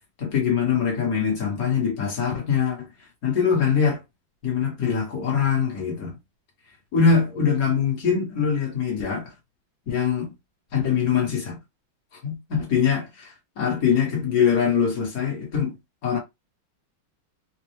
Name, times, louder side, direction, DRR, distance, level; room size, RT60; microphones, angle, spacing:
voice 1, 0.2-2.9 3.2-4.0 4.4-6.1 6.9-9.2 9.9-10.3 10.7-11.6 12.2-15.7 16.0-16.2, left 6 dB, 45° left, 1.6 m, -23 dB
4.3 x 2.2 x 3.0 m
omnidirectional pair, 2.3 m